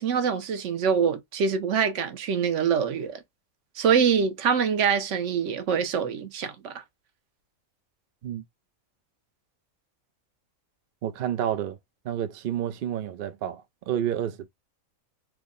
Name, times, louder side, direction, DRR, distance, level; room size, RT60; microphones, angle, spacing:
voice 1, 0.0-3.2 3.8-6.8, right 6 dB, 65° right, 1.0 m, -25 dB
voice 2, 11.0-11.8 12.0-14.5, right 10 dB, 80° right, 0.4 m, -30 dB
3.6 x 2.0 x 3.7 m
omnidirectional pair, 1.5 m